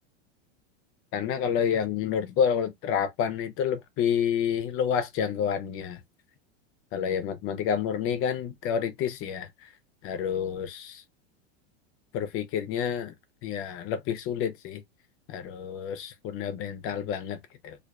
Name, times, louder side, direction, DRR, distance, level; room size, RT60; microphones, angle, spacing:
voice 1, 1.1-6.0 6.9-9.5 10.0-11.0 12.1-13.1 13.4-14.8 15.3-17.4 17.6-17.8, left 8 dB, 40° left, 0.6 m, -29 dB
2.4 x 2.3 x 2.2 m
supercardioid pair, 115°, 33 cm